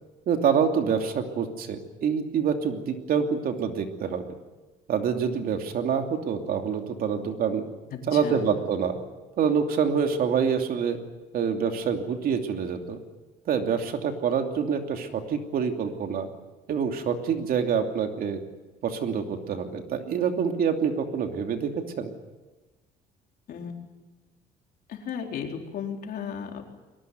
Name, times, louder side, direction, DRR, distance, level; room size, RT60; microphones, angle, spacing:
voice 1, 0.3-4.3 4.9-7.6 8.1-9.0 9.4-11.0 11.3-13.0 13.5-16.3 16.7-18.4 18.8-21.7 22.0-22.1, right 7 dB, 60° right, 5 dB, 2.8 m, -26 dB
voice 2, 7.9-8.5 23.5-23.7 24.9-26.6, left 7 dB, 60° left, 2 dB, 4.1 m, -35 dB
22.5 x 19.0 x 9.4 m, 1.2 s
cardioid pair, 110°, 17 cm